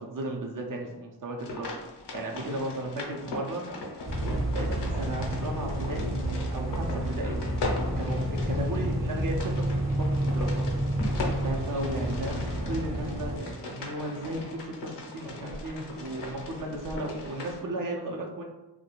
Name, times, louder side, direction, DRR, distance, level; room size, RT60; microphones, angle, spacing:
voice 1, 0.0-1.7 2.1-3.6 4.5-6.1 6.5-7.4 8.0-10.6 11.4-18.4, right 1 dB, 50° right, 1 dB, 0.6 m, -35 dB
sound 1, 1.4-17.6, left 2 dB, 80° left, 0.6 m, -39 dB
sound 2, 4.1-13.4, right 1 dB, 30° right, 0.9 m, -29 dB
2.4 x 2.1 x 2.9 m, 1.0 s
cardioid pair, 55°, 41 cm